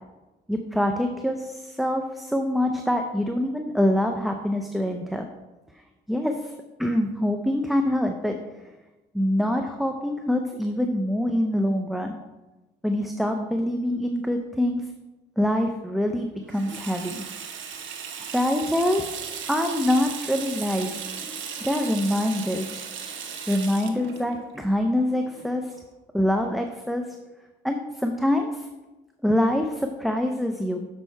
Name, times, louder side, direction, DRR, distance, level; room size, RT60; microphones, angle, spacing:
voice 1, 0.5-5.3 6.1-6.5 6.8-8.4 9.1-12.2 12.8-14.8 15.4-17.2 18.2-19.1 19.5-21.0 21.6-22.7 23.5-25.7 26.1-27.1 27.6-28.7 29.2-30.9, left 1 dB, ahead, 4 dB, 0.6 m, -25 dB
Water tap faucet / Sink (filling or washing), 16.5-25.8, right 7 dB, 75° right, 1.2 m, -36 dB
6.7 x 6.3 x 4.6 m, 1.1 s
cardioid pair, 90°, 20 cm